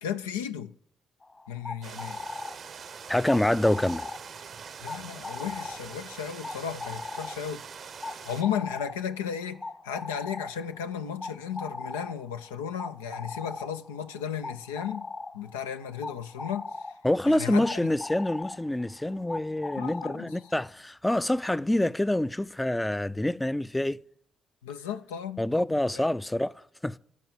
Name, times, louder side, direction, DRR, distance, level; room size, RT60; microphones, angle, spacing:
voice 1, 0.0-0.7 1.5-2.2 4.8-7.6 8.2-15.1 15.3-16.9 17.3-17.8 19.8-20.3 24.6-25.4, left 8 dB, 90° left, 0.4 m, -34 dB
sound 1, 1.2-20.7, left 3 dB, 35° left, 1.4 m, -40 dB
sound 2, 1.8-8.4, right 7 dB, 55° right, 0.6 m, -44 dB
voice 2, 3.1-4.1 17.0-24.0 25.4-27.0, left 1 dB, 10° left, 0.4 m, -26 dB
14.0 x 4.6 x 6.6 m
hypercardioid pair, 40°, 0 cm